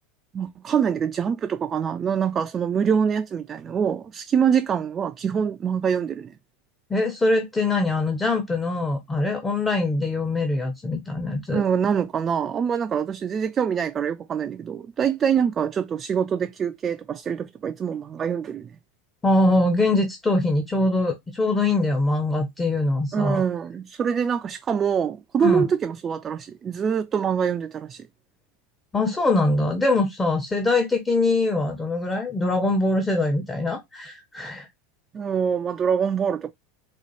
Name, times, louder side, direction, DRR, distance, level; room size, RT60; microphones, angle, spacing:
voice 1, 0.3-6.3 11.5-18.7 23.1-28.1 35.1-36.5, right 7 dB, 30° right, 0.3 m, -24 dB
voice 2, 6.9-11.6 19.2-23.4 25.4-25.7 28.9-34.7, left 2 dB, 15° left, 0.7 m, -23 dB
4.2 x 2.4 x 2.9 m
figure-of-eight pair, 85°, 0 cm